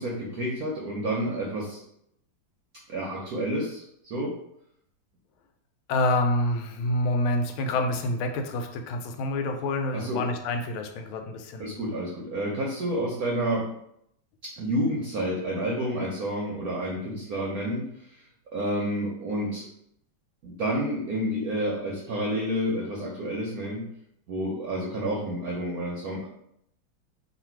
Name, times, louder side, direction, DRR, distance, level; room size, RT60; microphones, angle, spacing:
voice 1, 0.0-1.8 2.9-4.4 9.9-10.2 11.6-13.7 14.6-18.2 18.5-19.6 20.4-23.9 24.3-26.3, right 1 dB, 65° right, -3 dB, 0.9 m, -29 dB
voice 2, 5.9-11.8, left 2 dB, 80° left, 4 dB, 1.4 m, -27 dB
3.3 x 2.5 x 4.4 m, 0.75 s
omnidirectional pair, 2.3 m